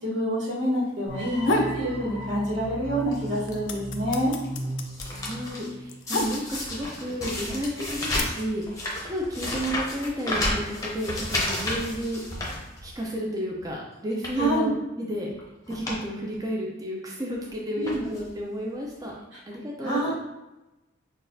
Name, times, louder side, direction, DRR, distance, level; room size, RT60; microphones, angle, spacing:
voice 1, 0.0-4.3 14.3-14.7 17.7-18.0 19.8-20.1, right 1 dB, 90° right, -6 dB, 1.4 m, -27 dB
sound 1, 1.1-6.2, right 1 dB, 65° right, 0.8 m, -37 dB
sound 2, 1.2-1.8 2.2-2.9 3.2-6.8 7.6-8.2, left 2 dB, 90° left, 0.5 m, -29 dB
sound 3, 3.1-3.5 4.1-5.7 6.1-13.2 13.6-13.7 14.1-14.5 15.3-15.4 15.7-16.0 16.3-16.4 17.3-17.5 17.8-18.3 19.1-19.2 19.4-19.5, left 1 dB, 15° left, 0.8 m, -32 dB
voice 2, 5.1-12.2 12.8-14.7 15.0-15.3 15.7-19.1 19.5-20.1, equal, 20° right, -2 dB, 0.5 m, -32 dB
5.9 x 2.4 x 2.6 m, 1.0 s
head